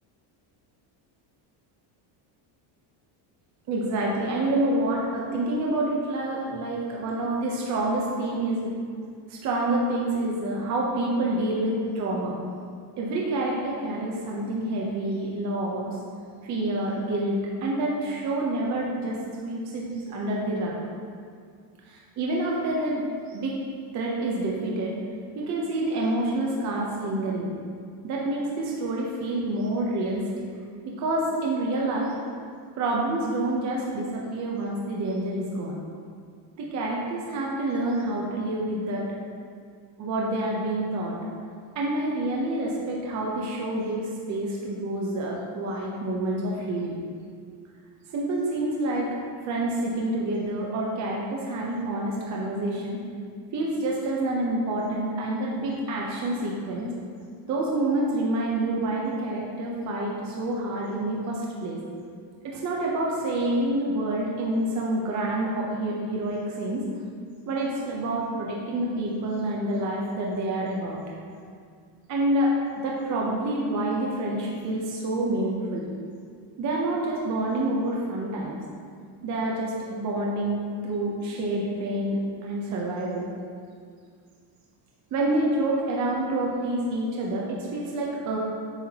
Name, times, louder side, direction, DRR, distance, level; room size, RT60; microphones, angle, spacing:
voice 1, 3.7-8.8 9.3-12.3 13.0-16.0 16.4-20.7 21.9-23.6 23.9-25.0 25.3-27.5 28.0-30.4 30.8-32.1 32.8-35.8 36.6-39.0 40.0-41.2 41.7-47.0 48.1-49.1 49.4-53.0 53.5-56.9 57.4-61.8 62.4-66.8 67.5-71.0 72.1-75.8 76.6-78.6 79.2-83.3 85.1-88.4, right 1 dB, 35° right, -3 dB, 0.8 m, -28 dB
8.1 x 5.7 x 2.9 m, 2.1 s
cardioid pair, 165°, 49 cm